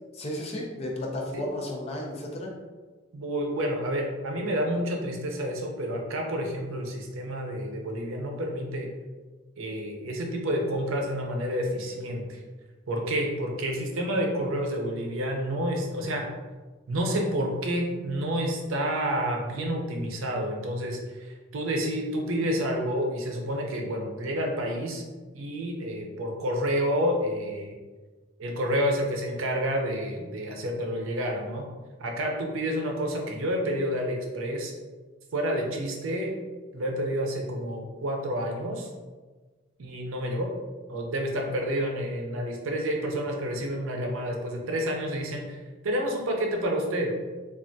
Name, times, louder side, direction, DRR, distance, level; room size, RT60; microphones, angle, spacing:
voice 1, 0.1-2.5, left 1 dB, 30° left, -1 dB, 0.5 m, -33 dB
voice 2, 3.1-8.9 9.6-12.4 12.9-16.3 16.9-25.0 25.3-27.8 28.4-31.6 32.0-34.7 35.3-36.3 36.7-38.9 39.8-40.5 40.9-45.6 45.8-47.1, equal, 80° right, 1 dB, 0.6 m, -29 dB
3.3 x 2.3 x 2.6 m, 1.3 s
head